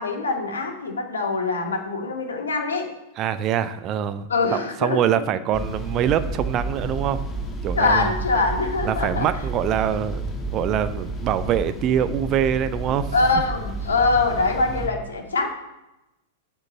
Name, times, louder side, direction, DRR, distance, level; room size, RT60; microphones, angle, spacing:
voice 1, 0.0-2.9 4.3-5.0 7.7-9.3 13.1-15.5, left 3 dB, 75° left, 2 dB, 2.0 m, -23 dB
voice 2, 3.2-7.2 7.6-8.1 8.8-10.2 10.5-13.1, right 9 dB, 35° right, 13 dB, 0.6 m, -24 dB
sound 1, 5.5-14.9, right 2 dB, 15° left, 2.2 m, -31 dB
8.0 x 7.0 x 7.2 m, 0.95 s
figure-of-eight pair, 95°, 0 cm